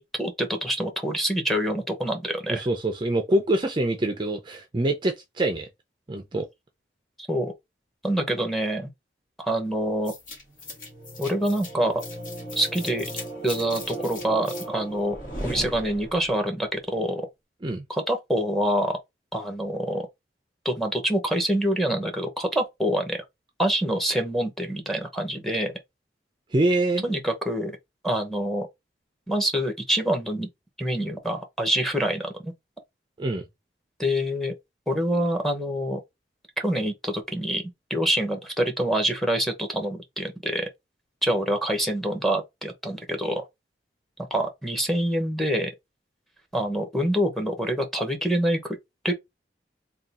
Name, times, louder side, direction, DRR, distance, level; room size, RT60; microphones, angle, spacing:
voice 1, 0.0-2.7 7.3-7.5 8.0-8.9 9.4-10.1 11.2-12.0 12.5-13.0 13.4-17.2 17.9-19.0 19.3-20.0 20.6-23.2 23.6-25.7 27.0-27.8 28.0-28.7 29.3-30.5 30.8-32.5 34.0-34.5 34.9-36.0 36.6-37.6 37.9-40.6 41.2-43.5 44.3-45.7 46.5-48.6 49.0-49.1, right 1 dB, ahead, 1.0 m, -26 dB
voice 2, 2.5-5.7 6.1-6.5 17.6-17.8 26.5-27.0 33.2-33.4, right 1 dB, 25° right, 0.5 m, -25 dB
sound 1, 10.1-16.4, equal, 50° left, 1.5 m, -36 dB
3.6 x 2.4 x 4.1 m
head